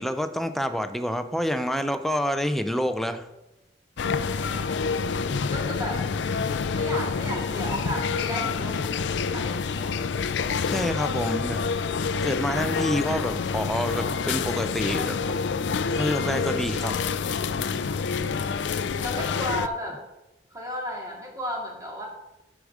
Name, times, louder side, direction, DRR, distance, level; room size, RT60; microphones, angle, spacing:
voice 1, 0.0-3.3 10.7-11.6 12.2-15.2 15.9-16.9, equal, ahead, 9 dB, 0.5 m, -28 dB
sound 1, 4.0-19.7, left 5 dB, 90° left, 0.4 m, -27 dB
voice 2, 4.0-4.9 5.5-6.1 6.7-10.0 17.8-18.7 19.0-20.0 20.5-22.1, equal, 20° right, -1 dB, 2.1 m, -34 dB
8.3 x 4.9 x 6.4 m, 0.98 s
head